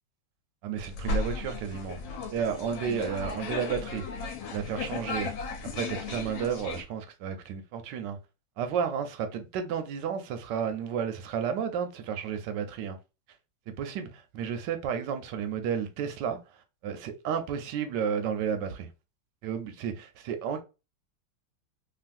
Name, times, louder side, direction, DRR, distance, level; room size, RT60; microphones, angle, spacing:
voice 1, 0.6-2.0 2.3-4.2 4.5-5.3 5.7-8.2 8.6-13.0 13.7-16.4 16.8-18.9 19.4-20.6, right 7 dB, 75° right, 1.1 m, -32 dB
sound 1, 0.8-6.8, left 3 dB, 75° left, 1.3 m, -35 dB
3.1 x 2.5 x 2.5 m
omnidirectional pair, 2.2 m